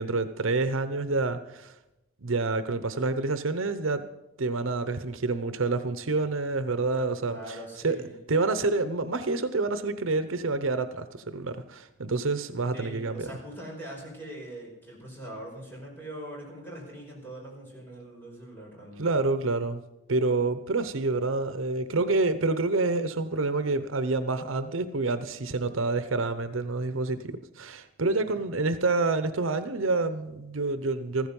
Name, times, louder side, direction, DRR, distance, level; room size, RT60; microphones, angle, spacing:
voice 1, 0.0-1.7 2.2-4.1 4.4-7.6 7.8-8.0 8.3-13.3 19.0-19.8 20.1-31.3, right 3 dB, 75° right, 11 dB, 0.9 m, -28 dB
voice 2, 7.3-8.1 12.7-19.2 28.0-28.4, right 1 dB, 10° left, -3 dB, 5.4 m, -42 dB
15.0 x 14.5 x 5.4 m, 0.95 s
head